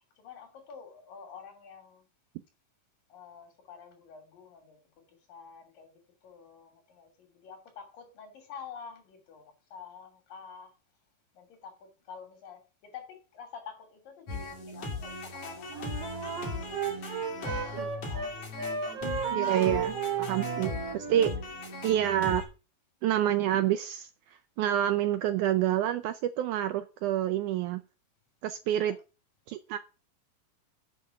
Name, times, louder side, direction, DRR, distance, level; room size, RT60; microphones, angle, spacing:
voice 1, 0.0-2.1 3.1-10.8 11.3-16.8 17.4-18.4 19.4-19.8 28.8-29.0, left 6 dB, 75° left, 4.5 m, -48 dB
sound 1, 14.3-22.4, left 2 dB, 50° left, 3.7 m, -38 dB
Wind instrument woodwind instrument, 15.7-18.3 18.6-21.3, right 6 dB, 55° right, 2.1 m, -34 dB
voice 2, 19.3-19.9 20.2-21.3 21.8-22.4 23.0-27.8 28.4-29.0 29.5-29.8, right 11 dB, 80° right, 1.8 m, -28 dB
8.4 x 5.6 x 6.8 m
omnidirectional pair, 4.1 m